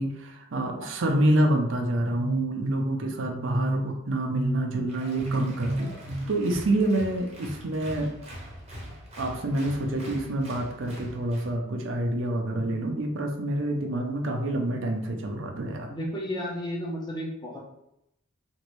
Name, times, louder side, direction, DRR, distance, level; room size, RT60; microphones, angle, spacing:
voice 1, 0.0-8.1 9.2-15.9, right 1 dB, 60° right, 2 dB, 0.5 m, -27 dB
Applause, 4.9-11.5, equal, 30° right, 0.7 m, -43 dB
voice 2, 15.9-17.6, equal, 20° left, -3 dB, 0.6 m, -33 dB
3.0 x 2.6 x 3.0 m, 0.82 s
head